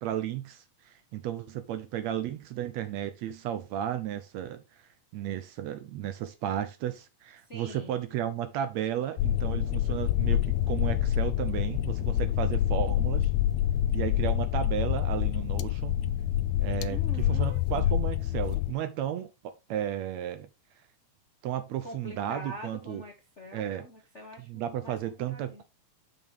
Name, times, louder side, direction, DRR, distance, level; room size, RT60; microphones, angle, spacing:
voice 1, 0.0-4.6 5.1-13.3 13.9-16.0 16.6-20.5 21.4-23.0 23.5-23.9 24.5-25.6, right 11 dB, 75° right, 1.8 m, -34 dB
voice 2, 7.5-8.0 16.9-18.0 21.8-25.0 25.3-25.6, left 1 dB, 40° left, 1.0 m, -44 dB
sound 1, 9.2-18.7, left 12 dB, 80° left, 1.8 m, -27 dB
7.2 x 6.1 x 3.3 m
omnidirectional pair, 3.5 m